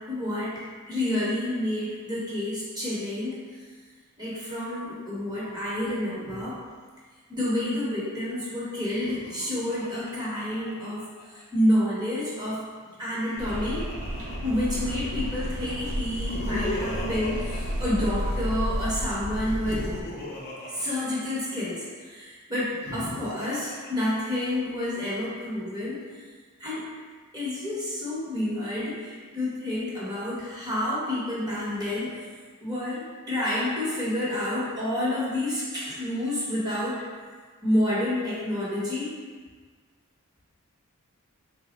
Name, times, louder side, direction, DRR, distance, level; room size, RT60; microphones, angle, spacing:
voice 1, 0.0-3.5 4.2-6.6 7.3-11.0 11.3-12.6 13.0-13.8 14.4-19.9 20.7-26.0 26.6-26.9 27.3-32.1 32.6-37.0 37.6-39.1, left 1 dB, 20° right, -8 dB, 0.9 m, -29 dB
Laughter, 8.9-11.4 12.8-15.1 16.0-18.5 19.4-21.8 22.6-24.6, left 1 dB, 45° left, 0.6 m, -38 dB
sound 1, 13.4-20.0, equal, 65° right, 0.5 m, -31 dB
3.4 x 2.0 x 4.0 m, 1.5 s
head